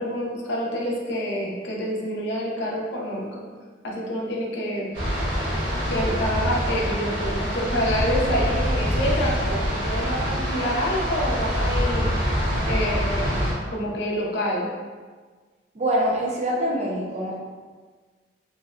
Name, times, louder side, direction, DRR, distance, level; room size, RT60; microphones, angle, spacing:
voice 1, 0.0-3.3 3.8-4.9 5.9-12.1 12.7-14.7, equal, 70° left, -3 dB, 0.5 m, -27 dB
sound 1, 4.9-13.5, equal, 80° right, 1.0 m, -25 dB
voice 2, 15.7-17.3, right 1 dB, 35° right, -3 dB, 0.4 m, -24 dB
2.6 x 2.0 x 2.4 m, 1.4 s
head